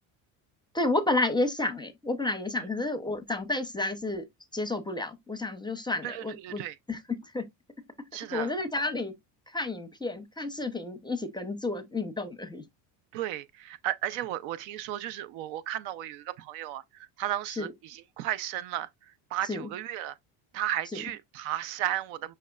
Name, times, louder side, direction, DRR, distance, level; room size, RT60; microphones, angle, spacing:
voice 1, 0.7-4.2 4.5-6.6 6.9-7.4 8.3-9.1 9.5-12.6 17.6-17.7 19.5-19.7 20.9-21.0, left 2 dB, 10° left, 0.5 m, -31 dB
voice 2, 6.0-6.8 8.1-8.5 13.1-20.2 20.5-22.3, right 12 dB, 75° right, 0.7 m, -34 dB
6.1 x 3.2 x 2.3 m
supercardioid pair, 105°, 48 cm